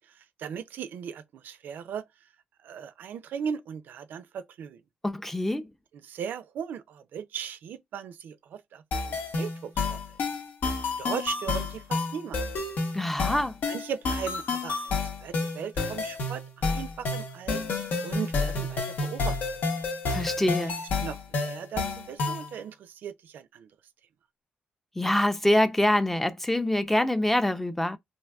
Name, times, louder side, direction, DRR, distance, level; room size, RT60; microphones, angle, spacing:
voice 1, 0.0-2.1 2.6-4.8 5.9-10.0 11.0-12.7 13.7-17.6 18.0-19.4 21.0-23.7, right 7 dB, 80° right, 0.4 m, -38 dB
voice 2, 5.0-5.7 12.9-13.5 20.1-20.8 25.0-28.0, left 1 dB, 10° left, 0.4 m, -25 dB
sound 1, 8.9-22.5, left 3 dB, 80° left, 0.8 m, -30 dB
3.5 x 2.5 x 2.2 m
cardioid pair, 100°, 3 cm